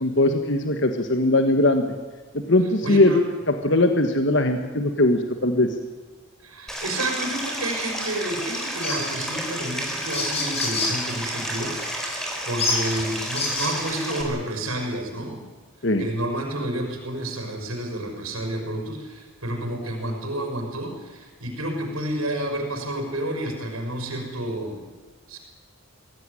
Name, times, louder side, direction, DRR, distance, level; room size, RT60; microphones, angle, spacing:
voice 1, 0.0-1.8 2.5-3.2 3.6-5.7 15.8-16.0, left 1 dB, 55° left, 6 dB, 1.6 m, -20 dB
voice 2, 2.8-3.3 6.4-15.5 16.0-24.8 25.3-25.4, right 1 dB, 90° right, 2 dB, 5.8 m, -30 dB
Stream, 6.7-14.2, equal, ahead, 3.9 m, -31 dB
sound 1, 8.8-9.1 9.7-9.8 10.0-11.0 11.7-11.9 12.6-13.8, left 3 dB, 30° left, 4.9 m, -27 dB
22.5 x 16.5 x 9.9 m, 1.4 s
head